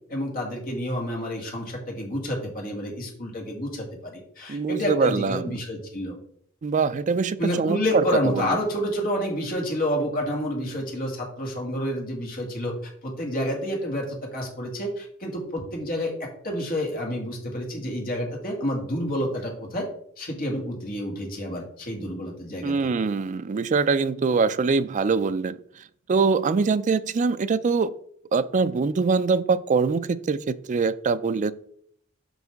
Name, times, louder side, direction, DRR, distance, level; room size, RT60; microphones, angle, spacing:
voice 1, 0.1-6.2 7.4-12.7 13.0-19.9 20.2-22.8, equal, 45° left, 2.1 m, -29 dB
voice 2, 4.5-5.4 6.6-7.8 8.3-8.5 22.6-25.6 26.1-27.9 28.3-31.5, right 4 dB, 35° right, 0.3 m, -23 dB
8.0 x 5.6 x 3.5 m
head